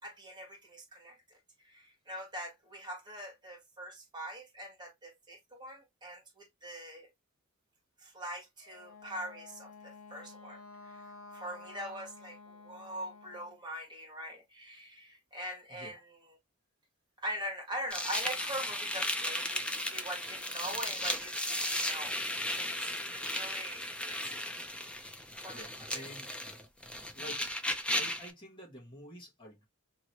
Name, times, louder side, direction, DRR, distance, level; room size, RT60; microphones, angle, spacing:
voice 1, 0.0-1.2 1.6-7.1 8.0-16.3 17.2-22.2 22.5-24.4 25.4-26.1, right 1 dB, 20° right, 1.6 m, -43 dB
Wind instrument woodwind instrument, 8.6-13.6, left 3 dB, 80° left, 0.7 m, -52 dB
sound 1, 17.9-28.3, left 1 dB, 5° left, 0.5 m, -35 dB
voice 2, 25.5-26.3 27.1-27.5 27.9-29.7, equal, 25° left, 1.3 m, -49 dB
2.9 x 2.8 x 3.0 m
head